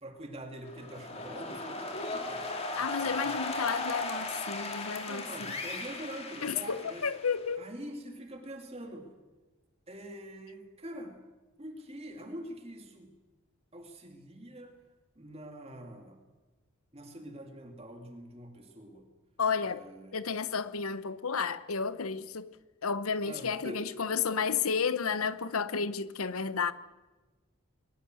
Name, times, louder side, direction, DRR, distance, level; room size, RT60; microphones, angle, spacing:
voice 1, 0.0-3.4 5.1-7.1 7.6-9.2 9.9-11.3 11.6-13.2 13.7-14.8 15.2-16.2 16.9-19.1 19.6-20.2 23.3-23.9, right 1 dB, 30° right, 2.3 m, -45 dB
sound 1, 0.6-7.5, left 2 dB, 30° left, 2.5 m, -37 dB
voice 2, 2.8-5.3 6.4-7.7 19.4-19.8 20.1-22.6 22.8-26.7, left 5 dB, 85° left, 1.0 m, -32 dB
21.5 x 20.5 x 7.7 m
head